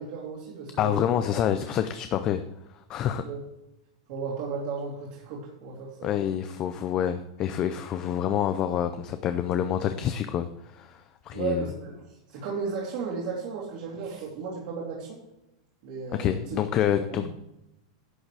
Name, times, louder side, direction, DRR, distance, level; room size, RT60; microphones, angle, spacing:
voice 1, 0.0-1.2 3.2-3.4 4.1-6.1 11.3-11.9 12.3-15.2 15.8-16.4 17.0-17.3, right 5 dB, 45° right, -4 dB, 2.6 m, -34 dB
voice 2, 0.8-2.4 2.7-3.2 6.0-11.6 16.1-17.3, left 10 dB, 25° left, 9 dB, 0.4 m, -27 dB
11.0 x 6.7 x 4.8 m, 0.89 s
supercardioid pair, 170°, 3 cm